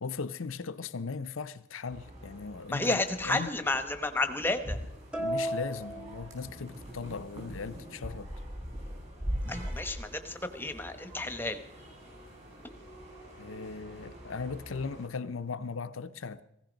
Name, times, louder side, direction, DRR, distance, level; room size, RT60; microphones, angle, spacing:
voice 1, 0.0-3.5 5.2-8.4 13.4-16.4, left 4 dB, 85° left, 0.7 m, -38 dB
sound 1, 1.9-15.1, equal, 30° right, 4.7 m, -42 dB
voice 2, 2.7-4.8 9.5-11.6, left 2 dB, 10° left, 1.0 m, -31 dB
sound 2, 5.1-6.9, right 1 dB, 5° right, 1.3 m, -35 dB
17.0 x 16.0 x 5.2 m
head